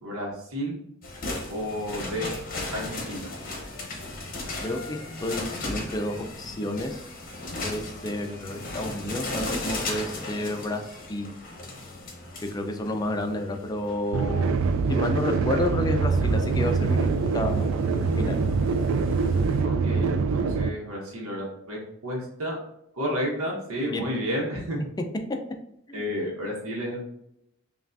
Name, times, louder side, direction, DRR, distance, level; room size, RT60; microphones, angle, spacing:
voice 1, 0.0-0.8 1.5-2.3 2.7-3.3 19.6-22.6 22.9-24.8 25.9-27.0, equal, 85° right, -2 dB, 1.0 m, -31 dB
sound 1, 1.0-19.6, left 2 dB, 45° left, 0.8 m, -37 dB
voice 2, 4.6-7.0 7.6-10.8 11.1-11.3 12.5-14.5 14.9-17.1 17.3-17.7 18.2-18.4 23.9-24.0 25.9-26.1, left 1 dB, 20° left, 4 dB, 0.4 m, -30 dB
sound 2, 14.1-20.7, right 4 dB, 70° right, 0.3 m, -24 dB
5.4 x 2.4 x 2.6 m, 0.79 s
head